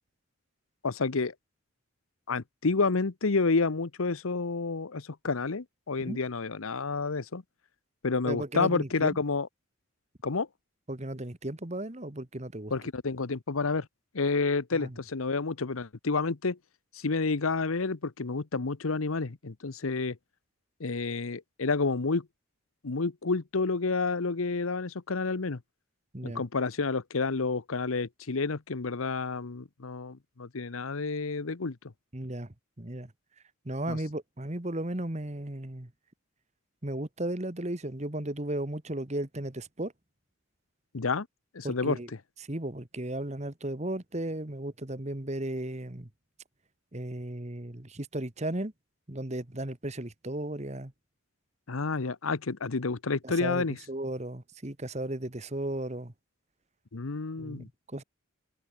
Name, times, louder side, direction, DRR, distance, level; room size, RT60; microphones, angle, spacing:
voice 1, 0.8-1.3 2.3-7.4 8.0-9.5 10.2-10.5 12.7-13.9 14.1-16.6 16.9-20.2 20.8-22.3 22.8-25.6 26.2-31.8 33.9-34.0 40.9-41.3 41.5-42.0 51.7-53.8 56.9-57.7, left 4 dB, 80° left, 0.9 m, -29 dB
voice 2, 8.2-9.2 10.9-12.7 14.7-15.0 26.1-26.4 32.1-33.1 33.6-35.9 36.8-39.9 41.6-42.1 42.4-46.1 46.9-48.7 49.1-50.9 53.2-56.1 57.4-58.0, right 1 dB, 30° right, 1.5 m, -35 dB
open air
head